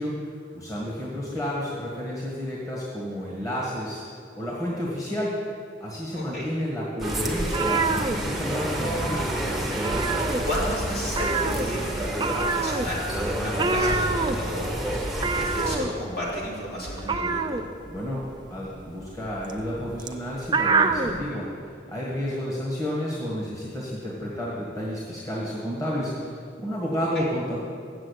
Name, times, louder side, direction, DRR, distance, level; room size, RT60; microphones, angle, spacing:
voice 1, 0.0-4.0 4.3-5.4 5.8-9.4 17.9-18.2 18.5-27.6, equal, 20° left, -5 dB, 1.6 m, -31 dB
voice 2, 6.1-6.5 10.1-17.6 27.1-27.3, equal, 55° left, -6 dB, 3.0 m, -33 dB
sound 1, 7.0-15.8, right 1 dB, ahead, 1.0 m, -29 dB
sound 2, 7.4-8.9 9.1-9.4 9.7-10.8 11.1-21.2, right 4 dB, 25° right, 0.4 m, -27 dB
7.6 x 7.6 x 8.1 m, 2.2 s
head